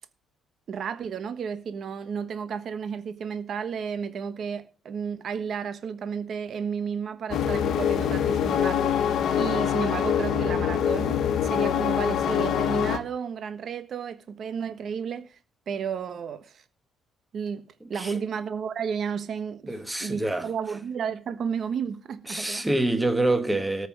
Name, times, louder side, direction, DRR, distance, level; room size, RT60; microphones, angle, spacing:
voice 1, 0.7-15.4 15.7-16.6 17.3-22.7, right 6 dB, 45° right, 1.3 m, -32 dB
sound 1, 7.3-13.0, left 8 dB, 55° left, 1.3 m, -24 dB
voice 2, 19.7-20.5 22.3-23.9, right 2 dB, 5° right, 1.4 m, -26 dB
13.5 x 5.9 x 7.4 m
cardioid pair, 160°, 0 cm